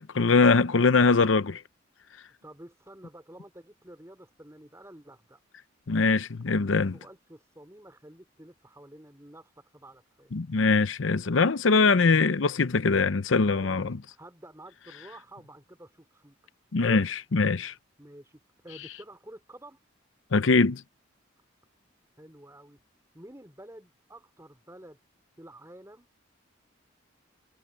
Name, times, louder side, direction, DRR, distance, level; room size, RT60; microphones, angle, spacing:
voice 1, 0.0-1.6 5.9-6.9 10.3-14.0 16.7-17.1 17.3-17.7 20.3-20.8, left 4 dB, 80° left, 0.7 m, -22 dB
voice 2, 2.4-5.4 6.5-10.3 13.5-16.4 16.8-17.1 18.0-19.8 22.2-22.8 23.1-25.0 25.4-26.1, right 1 dB, 15° right, 4.8 m, -49 dB
head